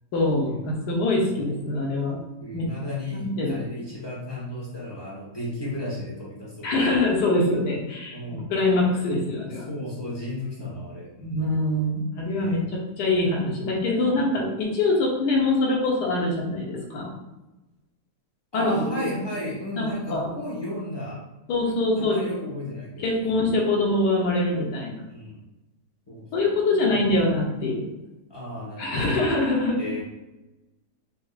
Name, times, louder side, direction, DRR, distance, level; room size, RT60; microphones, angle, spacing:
voice 1, 0.1-2.2 2.5-2.7 3.1-3.6 6.6-9.7 11.2-17.1 18.5-19.1 19.8-20.3 21.5-22.2 23.0-25.0 26.3-27.9 28.8-29.9, left 2 dB, 80° left, -1 dB, 1.4 m, -24 dB
voice 2, 1.2-1.5 2.4-6.9 8.1-8.8 9.7-11.5 12.4-12.6 14.1-14.3 18.5-21.2 22.0-23.4 25.1-25.4 26.1-27.2 28.3-29.2 29.8-30.0, left 1 dB, 20° left, -7 dB, 0.9 m, -34 dB
4.5 x 2.6 x 2.4 m, 1.0 s
omnidirectional pair, 1.8 m